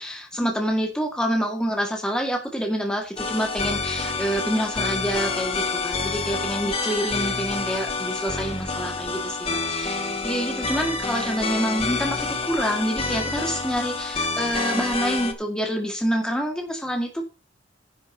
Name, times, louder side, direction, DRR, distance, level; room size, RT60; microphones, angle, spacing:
voice 1, 0.0-9.3 9.7-17.2, equal, 5° left, 2.1 m, -27 dB
sound 1, 3.2-15.3, left 4 dB, 30° left, 1.8 m, -28 dB
11.0 x 5.2 x 6.6 m
head